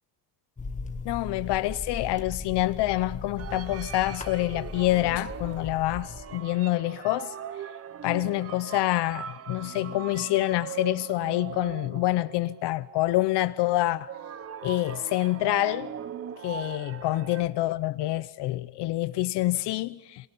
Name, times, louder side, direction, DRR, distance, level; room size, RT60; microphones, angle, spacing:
sound 1, 0.6-6.2, left 4 dB, 15° left, 1.7 m, -38 dB
voice 1, 1.0-7.3 8.0-14.1 14.6-15.9 16.4-20.3, left 16 dB, 70° left, 0.7 m, -27 dB
sound 2, 3.4-13.4 14.1-17.4, right 8 dB, 35° right, 0.8 m, -40 dB
26.5 x 23.5 x 5.4 m
cardioid pair, 135°, 43 cm